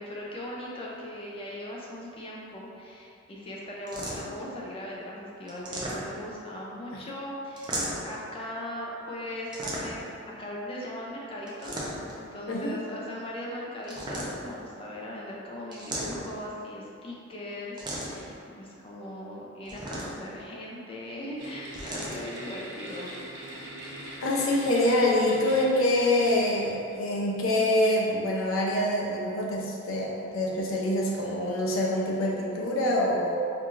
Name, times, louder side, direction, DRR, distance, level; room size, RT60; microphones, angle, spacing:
voice 1, 0.0-10.1 10.4-11.8 12.2-23.1, left 1 dB, 30° left, -4 dB, 0.5 m, -39 dB
sound 1, 3.9-4.5 5.5-6.4 7.6-8.2 9.5-10.2 11.5-12.2 13.8-14.6 15.7-16.5 17.8-18.3 19.7-20.4 21.7-22.2, right 1 dB, 25° right, 0.5 m, -35 dB
voice 2, 12.5-12.8 24.2-33.4, left 1 dB, 90° left, -3 dB, 0.6 m, -25 dB
sound 2, 21.4-27.0, right 1 dB, 65° right, 0.7 m, -42 dB
4.6 x 2.5 x 2.5 m, 2.5 s
head